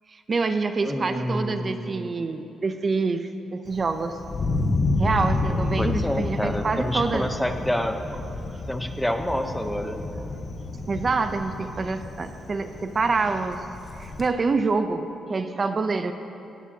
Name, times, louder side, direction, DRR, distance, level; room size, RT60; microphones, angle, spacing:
voice 1, 0.3-4.2 5.0-7.3 10.9-13.6 14.0-16.1, right 4 dB, 30° right, 8 dB, 0.5 m, -26 dB
voice 2, 0.8-2.2 5.5-8.0 8.7-10.0, equal, 5° left, 6 dB, 0.8 m, -28 dB
Thunder, 3.7-14.3, left 2 dB, 35° left, 1.0 m, -30 dB
17.5 x 16.5 x 2.8 m, 2.8 s
cardioid pair, 140°, 0 cm